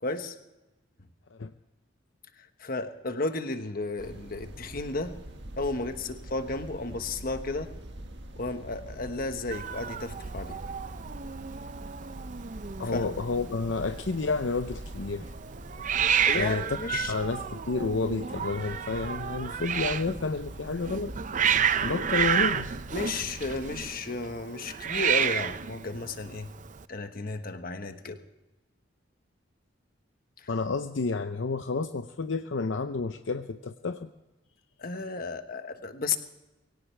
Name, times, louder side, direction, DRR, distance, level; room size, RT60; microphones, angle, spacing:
voice 1, 0.0-0.3 2.4-5.1 5.6-7.7 8.4-10.6 12.9-13.0 16.3-17.1 22.9-26.5 26.9-28.2 30.4-30.5 34.8-36.2, left 3 dB, 50° left, 8 dB, 1.3 m, -33 dB
sound 1, 4.0-23.9, right 1 dB, 65° right, 1.7 m, -44 dB
Hiss, 9.5-26.8, right 8 dB, 40° right, 0.5 m, -31 dB
voice 2, 12.8-15.3 16.3-16.8 17.1-21.1 21.8-22.7 30.5-34.1, left 4 dB, 70° left, 8 dB, 0.7 m, -30 dB
22.5 x 17.5 x 3.3 m, 1.0 s
head